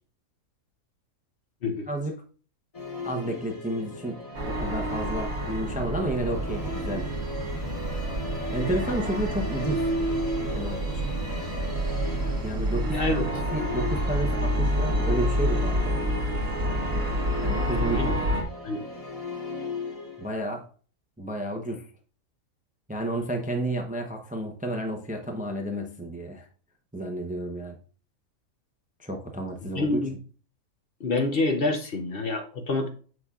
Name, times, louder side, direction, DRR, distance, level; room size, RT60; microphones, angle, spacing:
voice 1, 1.9-2.2 3.0-7.1 8.5-9.9 10.5-11.1 12.4-13.2 13.5-16.0 17.4-18.1 20.2-20.6 21.2-21.9 22.9-26.5 26.9-27.8 29.0-30.0, right 1 dB, 10° right, 3 dB, 0.6 m, -31 dB
Musical instrument, 2.7-20.4, left 1 dB, 25° left, 1.6 m, -36 dB
sound 1, 4.3-18.4, equal, 70° right, 1.7 m, -28 dB
voice 2, 12.9-13.3 17.9-18.1 18.6-18.8 29.8-30.2 31.0-32.9, left 2 dB, 50° left, 5 dB, 0.9 m, -27 dB
7.0 x 6.3 x 2.4 m, 0.40 s
omnidirectional pair, 1.4 m